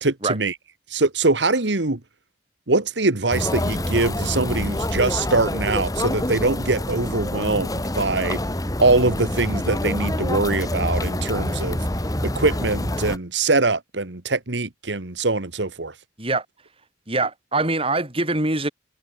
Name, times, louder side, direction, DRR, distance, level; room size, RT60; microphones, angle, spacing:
voice 1, 0.0-0.5 0.9-2.0 2.7-8.4 8.8-11.8 12.2-15.9, right 3 dB, 85° right, 1.8 m, -23 dB
sound 1, 3.3-13.2, left 1 dB, 20° left, 2.3 m, -26 dB
voice 2, 17.1-18.7, right 2 dB, 30° right, 5.6 m, -23 dB
head